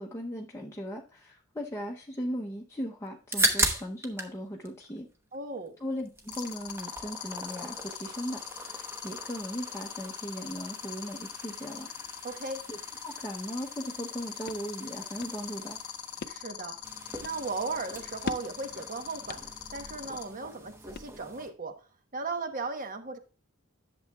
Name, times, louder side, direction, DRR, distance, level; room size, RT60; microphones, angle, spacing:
voice 1, 0.0-5.1 5.8-11.9 12.7-12.8 13.0-15.8, equal, 15° left, 0.7 m, -38 dB
sound 1, 3.1-4.4 4.6-5.7 6.0-21.5, right 2 dB, 10° right, 1.0 m, -38 dB
voice 2, 5.3-5.8 12.2-12.6 16.3-16.8 17.2-19.4 19.7-21.8 22.1-23.2, right 3 dB, 40° right, 1.0 m, -36 dB
sound 2, 6.3-20.2, left 11 dB, 85° left, 0.8 m, -40 dB
sound 3, 14.1-21.6, left 5 dB, 45° left, 0.4 m, -45 dB
11.0 x 6.9 x 2.3 m
head